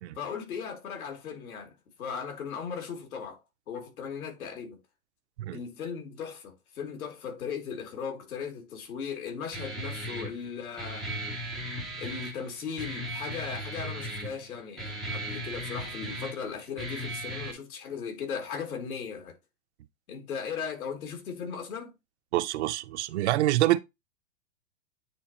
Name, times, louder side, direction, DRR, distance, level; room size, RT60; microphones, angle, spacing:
voice 1, 0.1-3.4 3.7-4.8 5.5-11.6 12.0-19.4 20.1-21.9, left 6 dB, 85° left, 3.0 m, -37 dB
Guitar, 9.5-17.5, right 1 dB, ahead, 0.4 m, -37 dB
voice 2, 22.3-23.8, right 15 dB, 55° right, 0.6 m, -26 dB
9.2 x 3.9 x 3.0 m
supercardioid pair, 155°, 42 cm